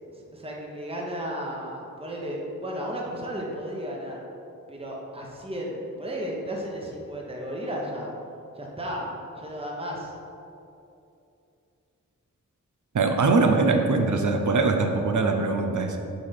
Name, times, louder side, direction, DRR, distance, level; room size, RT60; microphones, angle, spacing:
voice 1, 0.1-4.3 4.7-8.1 8.6-10.1, equal, 20° right, -2 dB, 1.0 m, -34 dB
voice 2, 12.9-16.0, right 3 dB, 75° right, 4 dB, 0.7 m, -22 dB
5.1 x 5.1 x 5.7 m, 2.7 s
wide cardioid pair, 90°, 30 cm